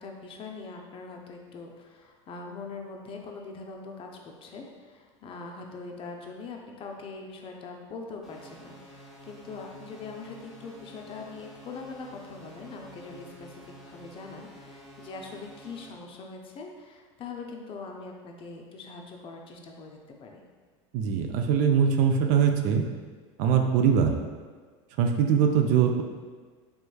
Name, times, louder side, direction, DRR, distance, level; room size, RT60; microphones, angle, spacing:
voice 1, 0.0-20.4, left 4 dB, 35° left, 1 dB, 0.5 m, -42 dB
sound 1, 8.2-15.9, right 1 dB, ahead, 0.9 m, -49 dB
voice 2, 20.9-22.8 23.4-24.1 25.0-26.0, right 7 dB, 55° right, 4 dB, 0.4 m, -22 dB
3.5 x 3.1 x 2.3 m, 1.5 s
hypercardioid pair, 95°, 16 cm